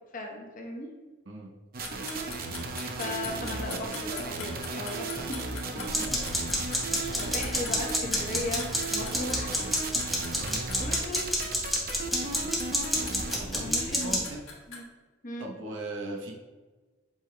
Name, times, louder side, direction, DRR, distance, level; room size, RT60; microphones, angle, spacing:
voice 1, 0.1-0.9 2.8-5.4 5.7-6.3 7.2-8.6 8.9-9.5 10.8-11.4 13.5-14.2 14.7-14.8 15.2-15.5, left 1 dB, 40° left, 0 dB, 0.9 m, -37 dB
sound 1, 1.7-13.5, right 3 dB, 45° right, 0.7 m, -35 dB
sound 2, 1.8-14.8, left 5 dB, 85° left, 1.5 m, -42 dB
voice 2, 3.1-4.0 5.9-6.3 6.9-7.2 10.4-10.6 13.3-14.4 15.4-16.3, right 1 dB, 65° right, 0 dB, 0.9 m, -39 dB
sound 3, 5.8-14.2, equal, ahead, 1.1 m, -31 dB
8.0 x 5.4 x 2.2 m, 1.3 s
head